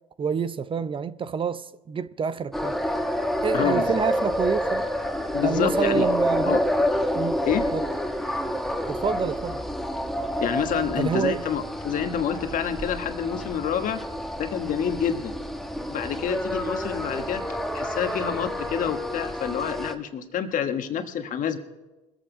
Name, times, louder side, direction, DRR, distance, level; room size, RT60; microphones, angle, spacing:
voice 1, 0.2-2.8 3.4-4.9 5.4-6.6 7.1-7.4 7.7-7.8 8.9-9.6 11.0-11.4, right 6 dB, 35° right, 0.6 m, -27 dB
sound 1, 2.5-19.9, equal, ahead, 1.3 m, -28 dB
voice 2, 3.5-3.9 5.3-6.1 6.4-6.6 7.4-7.6 10.4-14.0 14.4-15.3 15.9-17.4 17.7-21.6, left 8 dB, 55° left, 1.3 m, -27 dB
20.5 x 8.2 x 5.0 m
supercardioid pair, 80°, 16 cm